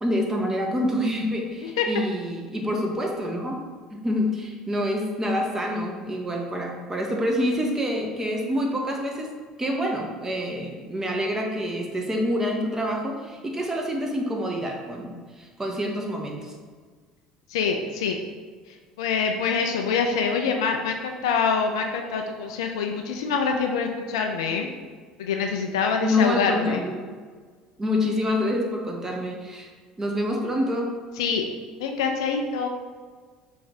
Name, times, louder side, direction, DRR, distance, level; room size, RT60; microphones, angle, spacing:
voice 1, 0.0-3.6 4.0-9.3 9.6-16.5 26.0-27.1 27.8-29.7 30.0-30.9, left 1 dB, 20° right, 1 dB, 0.9 m, -27 dB
voice 2, 17.5-18.2 19.0-24.7 25.2-26.8 31.2-31.4 31.8-32.7, left 5 dB, 75° left, 3 dB, 0.4 m, -25 dB
4.2 x 2.5 x 4.0 m, 1.5 s
hypercardioid pair, 65°, 3 cm